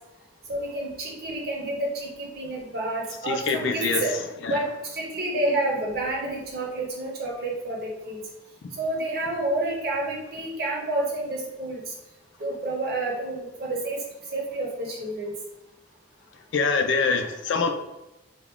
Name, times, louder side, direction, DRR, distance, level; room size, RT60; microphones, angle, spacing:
voice 1, 0.5-4.1 4.5-4.7 4.9-8.2 8.8-11.8 12.4-14.0 14.3-15.3, right 2 dB, 55° right, -2 dB, 0.9 m, -29 dB
voice 2, 3.3-4.0 4.4-4.6 16.5-17.7, left 4 dB, 75° left, 6 dB, 0.4 m, -24 dB
2.9 x 2.5 x 3.4 m, 0.98 s
head